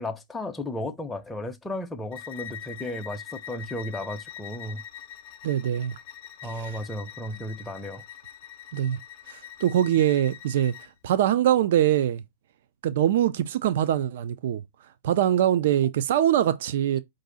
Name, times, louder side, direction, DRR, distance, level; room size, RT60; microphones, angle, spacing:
voice 1, 0.0-4.8 6.4-8.0, left 1 dB, 10° left, 0.6 m, -34 dB
Bowed string instrument, 2.1-10.9, left 10 dB, 55° left, 0.5 m, -43 dB
voice 2, 5.4-5.9 6.5-6.8 8.7-9.0 9.3-10.7 11.0-12.2 12.8-14.6 15.0-17.0, right 11 dB, 65° right, 0.3 m, -23 dB
4.6 x 2.6 x 3.9 m
hypercardioid pair, 115°, 0 cm